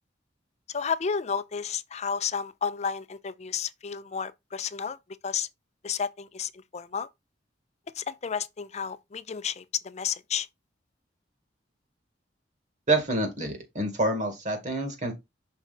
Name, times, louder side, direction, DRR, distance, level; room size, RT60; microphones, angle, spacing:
voice 1, 0.7-5.0 5.2-5.5 5.8-7.1 8.0-10.5, left 6 dB, 40° left, 0.5 m, -32 dB
voice 2, 12.9-15.1, right 2 dB, 45° right, 2.3 m, -27 dB
5.9 x 4.7 x 4.2 m
head